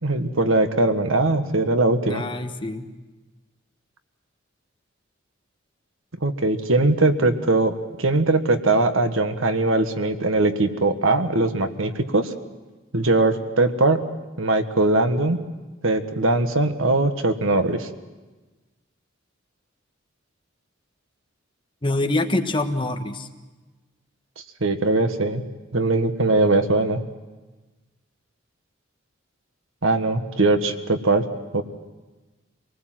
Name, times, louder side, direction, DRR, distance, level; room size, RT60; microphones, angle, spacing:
voice 1, 0.0-2.2 6.2-12.3 12.9-14.0 14.4-15.4 15.8-17.9 24.6-25.4 25.7-27.0 29.8-31.2 31.5-31.6, right 2 dB, 90° right, 8 dB, 1.5 m, -21 dB
voice 2, 2.1-2.9 21.8-23.3, left 2 dB, 25° left, 6 dB, 1.3 m, -25 dB
26.0 x 19.5 x 7.7 m, 1.2 s
head